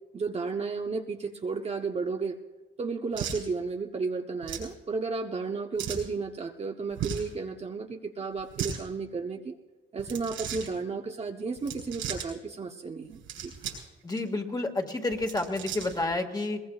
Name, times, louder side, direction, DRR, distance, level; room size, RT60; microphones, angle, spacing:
voice 1, 0.1-2.4 2.8-9.5 9.9-13.5, right 4 dB, 30° right, 3 dB, 0.9 m, -33 dB
sound 1, 3.1-3.4 4.4-4.7 5.8-6.1 6.9-7.3 8.4-8.8 10.0-10.7 11.6-12.3 13.1-13.9 14.2-14.3 15.1-16.0, right 8 dB, 85° right, 5.9 m, -36 dB
voice 2, 14.0-16.6, left 2 dB, 20° left, 4 dB, 1.9 m, -30 dB
21.5 x 20.5 x 2.4 m, 1.2 s
cardioid pair, 90°, 20 cm